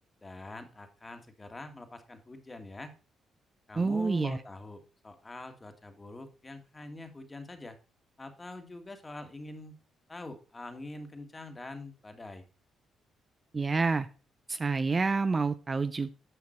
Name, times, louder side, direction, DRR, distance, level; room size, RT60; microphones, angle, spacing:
voice 1, 0.2-2.9 3.7-7.8 8.2-9.7 10.1-12.4, left 2 dB, 20° left, 6 dB, 1.6 m, -44 dB
voice 2, 3.8-4.4 13.5-14.1 14.5-16.1, right 4 dB, 30° right, 11 dB, 0.5 m, -28 dB
8.9 x 5.8 x 4.3 m, 0.34 s
cardioid pair, 90°, 0 cm